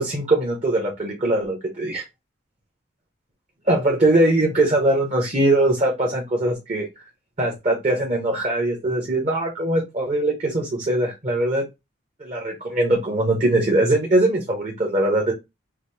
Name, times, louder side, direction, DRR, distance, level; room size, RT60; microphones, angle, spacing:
voice 1, 0.0-2.0 3.6-6.9 7.4-11.6 12.2-15.3, right 1 dB, 35° right, 0 dB, 0.9 m, -21 dB
4.9 x 2.0 x 3.2 m, 0.22 s
head